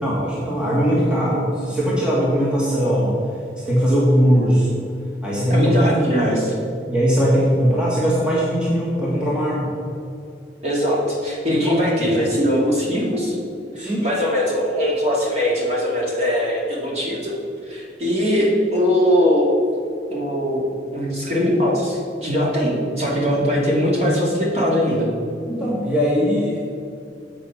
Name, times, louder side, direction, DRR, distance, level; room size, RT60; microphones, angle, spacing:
voice 1, 0.0-3.2 3.6-4.9 5.2-5.7 6.3-6.5 6.9-9.7 11.5-11.8 13.8-14.1 25.5-26.7, equal, 5° right, -6 dB, 1.4 m, -20 dB
voice 2, 5.5-6.5 10.6-13.4 13.7-17.4 17.7-19.5 20.1-20.7 20.9-25.1, equal, 35° right, -4 dB, 2.2 m, -20 dB
7.8 x 6.8 x 5.7 m, 2.6 s
head